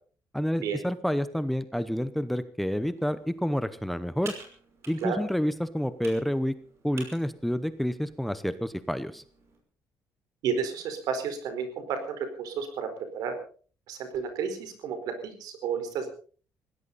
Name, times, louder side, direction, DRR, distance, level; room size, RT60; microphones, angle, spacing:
voice 1, 0.3-4.3 4.9-6.5 6.8-9.2, equal, ahead, 12 dB, 0.8 m, -29 dB
Computer keyboard, 2.8-9.6, right 4 dB, 40° right, 5.7 m, -50 dB
voice 2, 10.4-13.3 13.9-16.1, right 6 dB, 75° right, 8 dB, 4.4 m, -32 dB
21.0 x 16.5 x 4.1 m, 0.41 s
cardioid pair, 165°, 7 cm